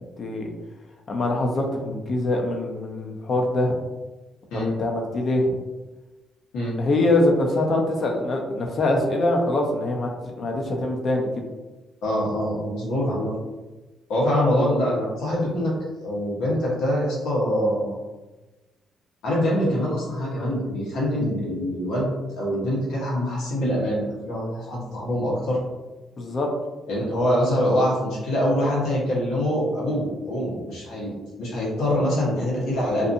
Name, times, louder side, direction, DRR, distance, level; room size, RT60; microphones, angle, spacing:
voice 1, 0.2-0.5 1.1-3.7 4.5-5.6 6.8-10.1 10.4-11.4 26.2-26.5, left 2 dB, 50° left, 1 dB, 0.6 m, -23 dB
voice 2, 12.0-13.3 14.1-15.7 16.0-18.0 19.2-25.6 26.9-33.1, equal, 90° left, -5 dB, 1.1 m, -24 dB
2.6 x 2.6 x 2.5 m, 1.1 s
cardioid pair, 90°, 0 cm